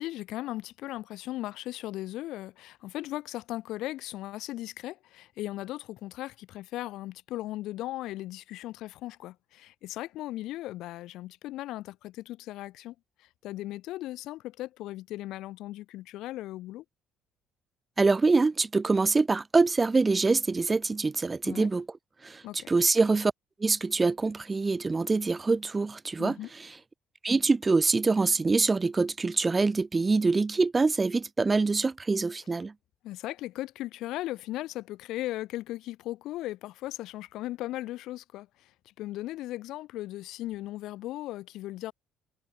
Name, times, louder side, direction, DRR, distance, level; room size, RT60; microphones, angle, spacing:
voice 1, 0.0-12.9 13.4-16.8 21.4-21.7 22.4-22.7 26.2-26.5 33.0-38.5 39.0-41.9, left 16 dB, 80° left, 1.0 m, -37 dB
voice 2, 18.0-21.9 22.2-23.3 23.6-26.7 27.2-32.7, right 3 dB, 20° right, 0.7 m, -25 dB
cardioid pair, 100°, 0 cm